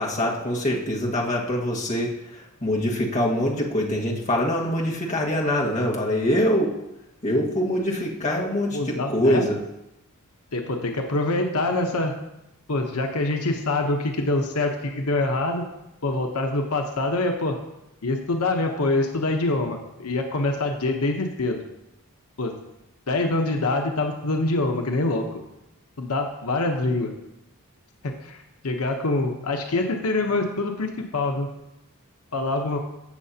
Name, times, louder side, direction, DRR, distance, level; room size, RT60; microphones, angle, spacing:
voice 1, 0.0-2.1 2.6-6.7 7.2-9.6, equal, 35° left, -2 dB, 1.5 m, -24 dB
voice 2, 8.7-9.5 10.5-12.1 12.7-15.7 16.0-17.6 18.0-21.6 22.4-22.5 23.1-25.4 26.0-27.1 28.0-31.5 32.3-32.8, left 2 dB, 85° left, 3 dB, 0.9 m, -25 dB
15.5 x 6.6 x 2.8 m, 0.90 s
head